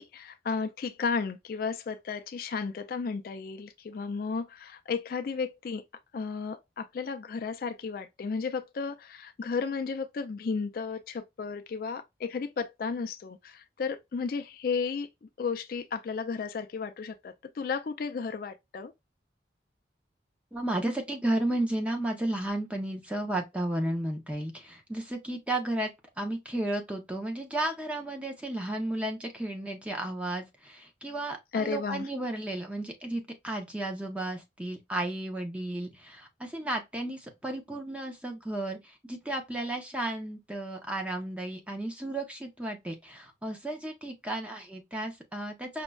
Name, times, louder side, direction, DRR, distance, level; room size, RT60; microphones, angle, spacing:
voice 1, 0.0-5.8 6.1-18.9 31.5-32.1, left 5 dB, 50° left, 0.3 m, -33 dB
voice 2, 20.5-25.9 26.2-45.8, right 1 dB, 5° right, 0.6 m, -33 dB
5.1 x 2.1 x 2.2 m
head